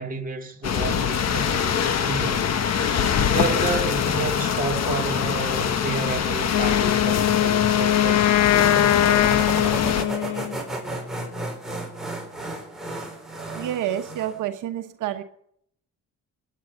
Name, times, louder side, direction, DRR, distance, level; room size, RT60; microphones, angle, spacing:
voice 1, 0.0-2.5 3.2-9.1, right 4 dB, 30° right, 2.2 m, -31 dB
sound 1, 0.6-10.0, left 8 dB, 60° left, 1.4 m, -24 dB
Wind instrument woodwind instrument, 6.5-10.6, left 13 dB, 80° left, 0.9 m, -21 dB
sound 2, 8.6-14.4, right 2 dB, ahead, 4.4 m, -33 dB
voice 2, 13.5-15.2, right 11 dB, 80° right, 1.1 m, -28 dB
21.0 x 9.5 x 7.0 m
cardioid pair, 90°, 30 cm